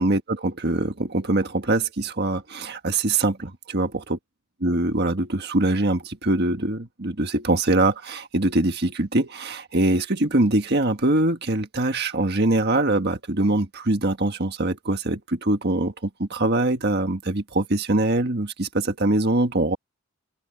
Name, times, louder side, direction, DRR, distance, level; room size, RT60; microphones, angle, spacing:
voice 1, 0.0-4.2 4.6-19.8, right 2 dB, 50° right, 1.5 m, -23 dB
open air
head